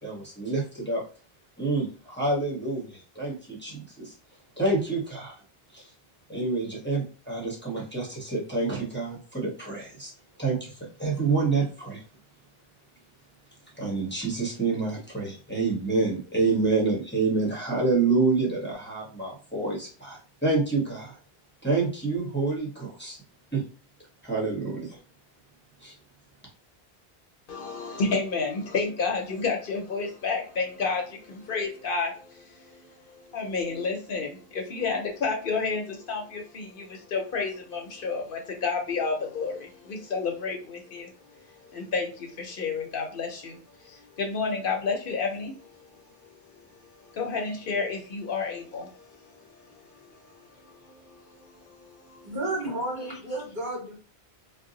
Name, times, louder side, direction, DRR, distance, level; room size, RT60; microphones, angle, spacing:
voice 1, 0.0-1.0 1.6-4.1 4.6-5.4 5.7-5.9 6.3-10.1 10.4-12.0 13.8-21.2 21.6-23.2 23.5-23.6 24.2-25.0 25.8-25.9, right 3 dB, 10° left, -6 dB, 0.8 m, -27 dB
voice 2, 27.5-52.3, left 4 dB, 60° left, 2 dB, 0.8 m, -31 dB
voice 3, 52.2-53.9, right 1 dB, 50° right, -3 dB, 1.4 m, -32 dB
2.7 x 2.2 x 3.7 m, 0.39 s
omnidirectional pair, 1.0 m